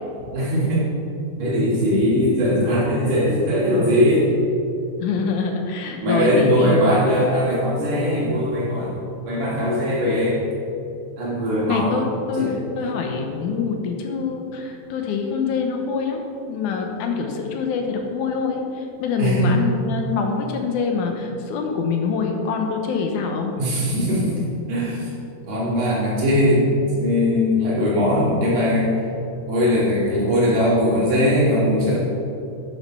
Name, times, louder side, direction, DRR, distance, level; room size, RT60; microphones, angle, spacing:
voice 1, 0.3-0.9 1.4-4.3 6.0-9.0 9.3-10.4 11.2-11.9 12.4-12.6 19.2-19.6 23.6-24.4 24.7-25.1 25.5-28.9 29.5-32.0, equal, 90° right, -6 dB, 4.0 m, -20 dB
voice 2, 5.0-6.9 11.7-23.6, left 5 dB, 80° left, 3 dB, 2.4 m, -25 dB
10.0 x 6.1 x 5.8 m, 2.7 s
omnidirectional pair, 3.5 m